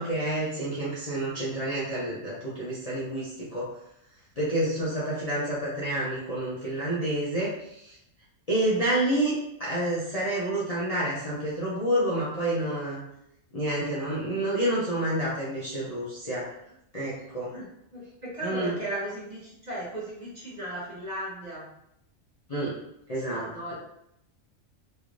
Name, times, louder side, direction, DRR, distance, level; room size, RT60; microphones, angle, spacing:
voice 1, 0.0-3.7 4.4-7.9 8.5-13.0 13.5-16.5 16.9-17.5 18.4-18.7 22.5-22.8 23.1-23.7, right 1 dB, 40° left, -9 dB, 0.6 m, -29 dB
voice 2, 17.9-21.6 23.1-23.7, right 1 dB, 40° right, -6 dB, 0.8 m, -36 dB
3.2 x 3.1 x 2.5 m, 0.79 s
omnidirectional pair, 1.4 m